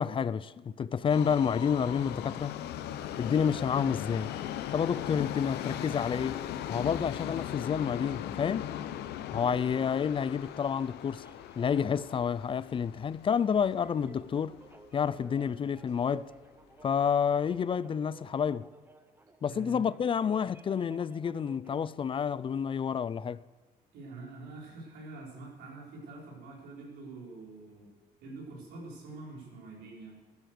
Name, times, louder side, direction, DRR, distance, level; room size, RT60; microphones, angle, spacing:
voice 1, 0.0-2.5 3.2-4.3 4.7-8.7 9.3-11.2 11.6-14.6 14.9-16.3 16.8-18.7 19.4-23.4, left 7 dB, 30° left, 0.4 m, -29 dB
Subway metro underground, 1.1-15.2 15.5-15.6 16.4-16.5 16.8-16.9 17.6-17.7, left 11 dB, 75° left, 0.9 m, -39 dB
sound 1, 9.9-22.0, right 2 dB, 10° right, 0.9 m, -54 dB
voice 2, 19.4-19.8 23.9-27.9 28.2-30.2, right 3 dB, 80° right, 5.0 m, -45 dB
15.0 x 12.0 x 6.7 m
cardioid pair, 110°, 17 cm